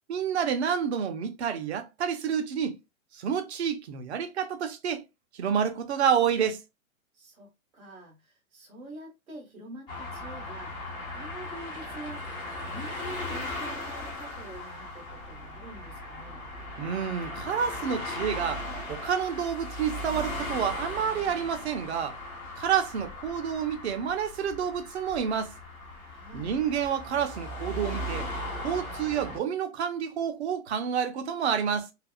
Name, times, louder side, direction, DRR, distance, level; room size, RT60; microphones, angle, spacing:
voice 1, 0.1-2.7 3.1-5.0 5.3-6.6 16.8-22.2 22.6-25.5 26.3-28.3 28.6-31.9, right 8 dB, 50° right, 0.7 m, -29 dB
voice 2, 7.1-12.3 12.6-16.4 26.0-26.5, right 2 dB, 70° right, 1.6 m, -46 dB
sound 1, 9.9-29.4, left 1 dB, 5° left, 0.3 m, -38 dB
3.4 x 2.5 x 2.3 m
figure-of-eight pair, 125°, 42 cm